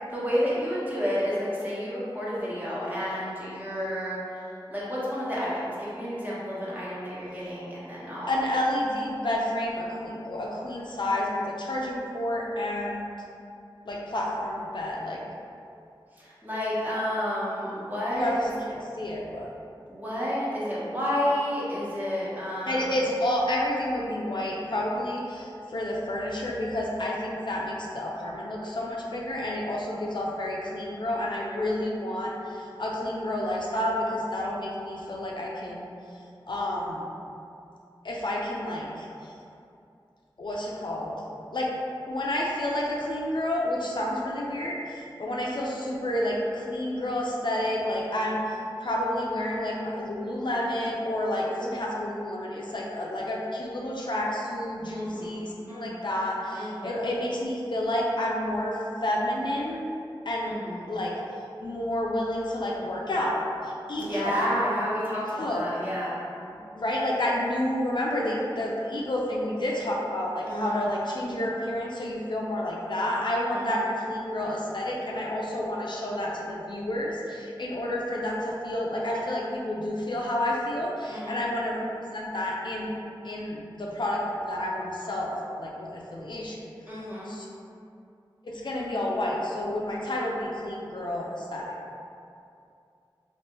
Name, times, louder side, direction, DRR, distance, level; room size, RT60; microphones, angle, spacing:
voice 1, 0.1-8.4 16.1-18.3 19.9-22.9 54.9-55.4 55.7-56.0 56.5-56.9 60.5-60.9 64.0-66.2 70.4-71.3 73.5-73.9 81.1-81.4 86.9-87.3, equal, 20° right, -8 dB, 1.0 m, -31 dB
voice 2, 8.3-13.1 13.9-15.2 18.1-19.5 22.7-35.9 36.5-37.0 38.0-39.3 40.4-41.1 41.5-41.7 42.1-59.8 60.3-60.6 60.9-61.1 61.6-64.7 65.4-65.6 66.7-81.8 82.1-82.9 83.2-86.6 87.3-87.5 88.4-91.8, left 1 dB, 60° left, -3 dB, 0.4 m, -30 dB
3.3 x 2.5 x 2.9 m, 2.5 s
wide cardioid pair, 50°, 9 cm